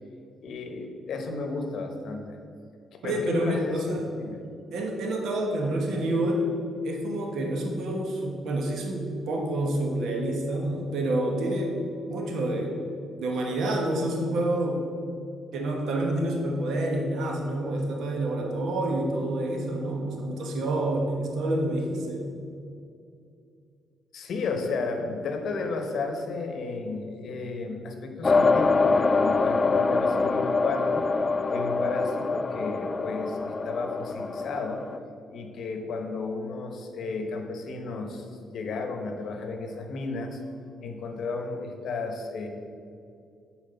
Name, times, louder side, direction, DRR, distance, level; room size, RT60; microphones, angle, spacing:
voice 1, 0.4-2.4 2.9-4.4 24.1-31.1 31.5-34.8 35.3-38.3 38.5-40.4 40.8-42.5, left 3 dB, 65° left, 4 dB, 1.0 m, -33 dB
voice 2, 3.0-4.1 4.7-6.5 6.8-11.8 12.1-12.8 13.2-14.9 15.5-22.3, right 1 dB, 70° right, 1 dB, 1.1 m, -28 dB
sound 1, 28.2-35.0, left 4 dB, 30° left, 0.3 m, -25 dB
7.4 x 4.6 x 5.6 m, 2.4 s
cardioid pair, 90°, 0 cm